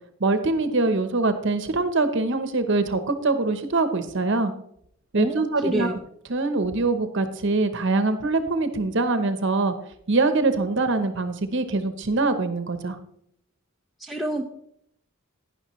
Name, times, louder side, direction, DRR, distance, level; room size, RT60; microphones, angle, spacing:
voice 1, 0.2-4.5 5.1-6.0 6.3-9.7 10.1-13.0, right 3 dB, 60° right, 9 dB, 0.9 m, -23 dB
voice 2, 5.1-5.9 14.0-14.4, right 1 dB, ahead, 0 dB, 0.6 m, -28 dB
11.5 x 9.9 x 3.1 m, 0.71 s
head